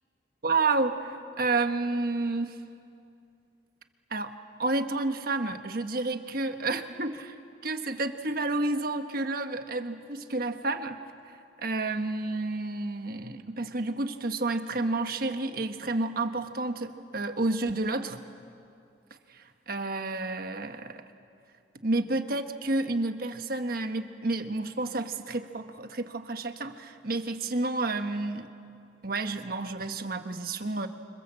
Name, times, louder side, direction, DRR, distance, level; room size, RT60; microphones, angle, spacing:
voice 1, 0.4-2.6 4.1-4.3 4.6-7.3 7.6-11.0 11.6-18.2 19.3-21.0 21.8-28.5 29.0-30.9, right 2 dB, 55° right, 7 dB, 1.4 m, -30 dB
28.5 x 26.0 x 7.7 m, 2.5 s
head